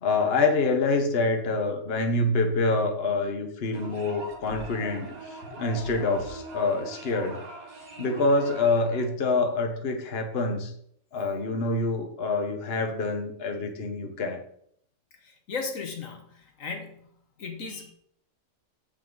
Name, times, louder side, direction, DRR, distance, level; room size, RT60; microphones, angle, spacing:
voice 1, 0.0-7.4 8.0-10.7 11.1-14.4, left 3 dB, 45° left, 5 dB, 1.3 m, -26 dB
sound 1, 3.7-9.1, right 2 dB, 75° right, 2.1 m, -41 dB
voice 2, 15.2-17.1 17.4-17.9, left 4 dB, 65° left, 5 dB, 1.5 m, -36 dB
8.2 x 7.8 x 3.9 m, 0.67 s
omnidirectional pair, 1.5 m